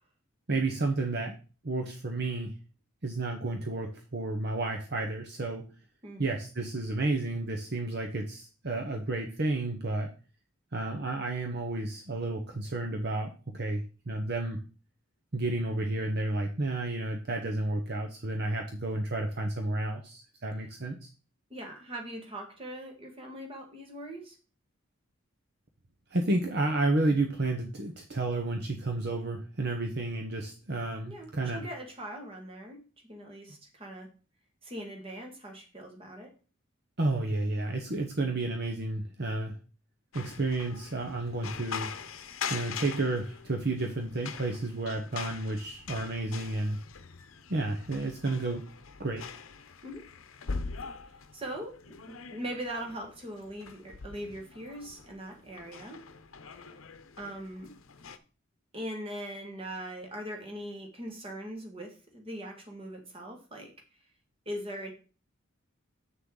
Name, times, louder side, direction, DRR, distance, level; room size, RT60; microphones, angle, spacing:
voice 1, 0.5-1.4 1.6-2.5 3.0-5.7 6.2-10.1 10.7-14.6 15.3-21.1 26.1-31.6 37.0-39.6 40.1-41.9 42.5-46.8 47.5-48.6 49.0-49.2, right 2 dB, 50° right, 3 dB, 1.0 m, -31 dB
voice 2, 21.5-24.4 31.1-32.8 33.1-34.1 34.6-36.3 49.8-50.0 51.3-56.0 57.2-57.7 58.7-63.7 64.5-64.9, right 1 dB, 25° right, 3 dB, 1.8 m, -41 dB
sound 1, 40.1-58.2, left 5 dB, 80° left, 0.8 m, -43 dB
7.7 x 6.6 x 3.8 m, 0.35 s
head